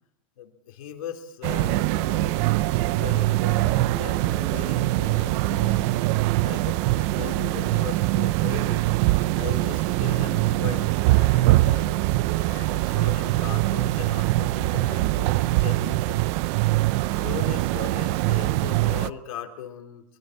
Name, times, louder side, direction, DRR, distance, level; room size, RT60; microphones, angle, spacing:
voice 1, 0.4-5.9 6.4-8.8 9.2-16.2 16.9-20.0, left 9 dB, 85° left, 4 dB, 3.8 m, -39 dB
sound 1, 1.4-19.1, right 18 dB, 55° right, 0.7 m, -23 dB
sound 2, 5.5-15.8, right 10 dB, 70° right, 3.9 m, -45 dB
26.5 x 23.0 x 4.6 m, 0.71 s
supercardioid pair, 135°, 18 cm